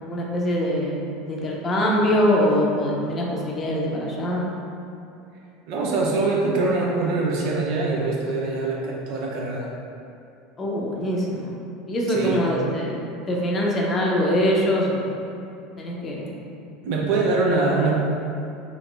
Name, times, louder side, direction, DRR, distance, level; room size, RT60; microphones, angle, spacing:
voice 1, 0.0-4.5 10.6-11.6 11.9-13.0 13.3-15.1 15.8-16.3, equal, 30° left, -3 dB, 0.6 m, -23 dB
voice 2, 5.7-9.7 12.1-12.4 16.8-18.0, right 3 dB, 55° right, -2 dB, 0.6 m, -23 dB
4.2 x 2.8 x 2.4 m, 2.6 s
figure-of-eight pair, 70°, 0 cm